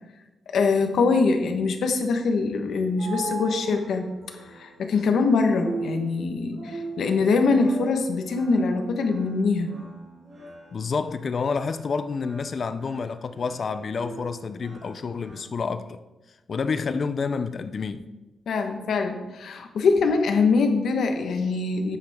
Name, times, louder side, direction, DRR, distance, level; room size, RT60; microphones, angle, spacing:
voice 1, 0.5-4.1 4.5-9.7 18.5-22.0, left 4 dB, 80° left, 1.2 m, -23 dB
sound 1, 2.5-15.4, right 2 dB, 45° right, 3.3 m, -40 dB
voice 2, 10.7-16.0 16.5-18.1, left 5 dB, 45° left, 0.5 m, -29 dB
11.5 x 8.4 x 3.6 m
wide cardioid pair, 160°, 0 cm